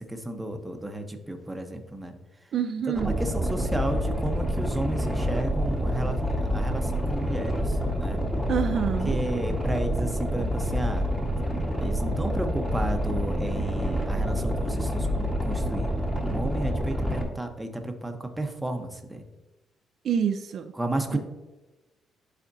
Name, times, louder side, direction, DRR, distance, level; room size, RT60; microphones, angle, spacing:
voice 1, 0.0-2.1 2.9-6.2 6.5-8.2 9.0-11.0 11.8-19.2 20.7-21.2, right 1 dB, 10° right, 4 dB, 0.9 m, -33 dB
voice 2, 2.5-3.2 8.5-9.2 20.0-20.7 21.1-21.2, right 8 dB, 65° right, 8 dB, 0.4 m, -27 dB
Boat Water vehicle, 2.9-17.2, equal, 10° left, 1.5 m, -27 dB
11.5 x 4.3 x 2.7 m, 1.1 s
cardioid pair, 90°, 0 cm